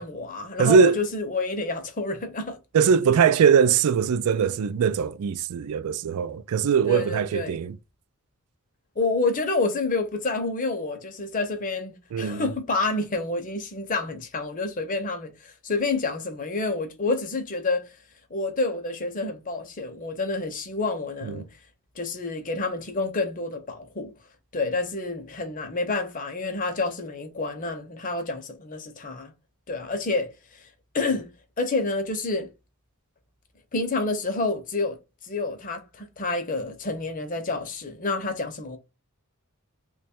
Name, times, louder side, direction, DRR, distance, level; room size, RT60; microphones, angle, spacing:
voice 1, 0.0-2.6 6.9-7.6 9.0-17.9 18.3-21.5 22.0-24.1 24.5-29.3 29.7-30.7 30.9-31.3 31.6-32.5 33.7-35.0 35.2-38.8, left 3 dB, 35° left, 0.6 m, -28 dB
voice 2, 0.6-1.0 2.7-7.8 12.1-12.5 21.2-21.4, right 6 dB, 85° right, 0.4 m, -21 dB
3.0 x 2.3 x 4.2 m
head